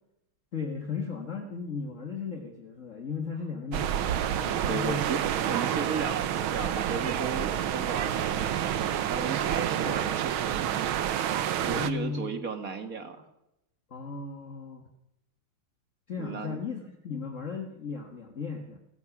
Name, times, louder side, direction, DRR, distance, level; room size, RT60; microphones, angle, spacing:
voice 1, 0.5-4.0 4.4-5.2 9.8-10.0 11.6-12.4 13.9-14.8 16.1-18.8, left 5 dB, 40° left, 4 dB, 1.7 m, -36 dB
sound 1, 3.7-11.9, right 10 dB, 75° right, 1.7 m, -29 dB
voice 2, 4.7-5.2 5.5-10.9 11.7-13.2 16.2-16.6, right 4 dB, 40° right, 8 dB, 2.3 m, -35 dB
29.0 x 15.5 x 6.0 m, 0.85 s
omnidirectional pair, 2.4 m